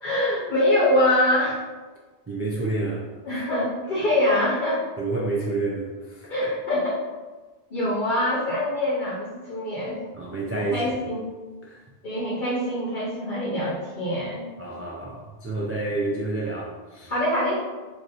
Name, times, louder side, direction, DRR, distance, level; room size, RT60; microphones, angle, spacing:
voice 1, 0.0-1.6 3.2-4.8 6.3-6.9 7.7-10.1 10.5-11.3 12.0-14.4 17.1-17.8, left 1 dB, 55° left, -7 dB, 1.0 m, -24 dB
voice 2, 2.3-3.1 3.3-3.4 5.0-6.3 10.1-10.9 11.6-11.8 14.6-17.1, right 2 dB, 20° right, -5 dB, 0.4 m, -29 dB
3.1 x 2.6 x 4.0 m, 1.3 s
omnidirectional pair, 1.1 m